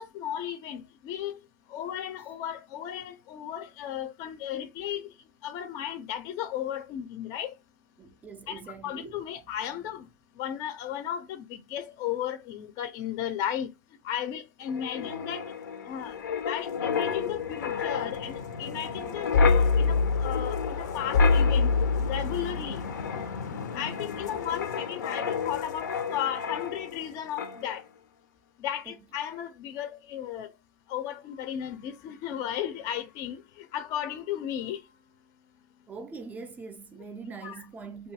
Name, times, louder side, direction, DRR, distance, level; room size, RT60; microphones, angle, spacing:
voice 1, 0.0-1.4 1.7-5.0 5.4-7.5 8.5-10.1 10.4-13.7 14.0-15.4 15.9-16.1 16.5-22.8 23.7-27.8 28.6-30.5 30.9-33.4 33.7-34.8 37.4-37.7, left 10 dB, 45° left, 0.4 m, -35 dB
voice 2, 8.0-9.2 9.7-9.8 28.9-29.0 35.9-38.1, right 4 dB, 15° right, 0.4 m, -43 dB
Wind, 14.7-27.1 27.4-27.6, left 4 dB, 90° left, 0.6 m, -28 dB
2.6 x 2.3 x 2.8 m
hypercardioid pair, 120°, 9 cm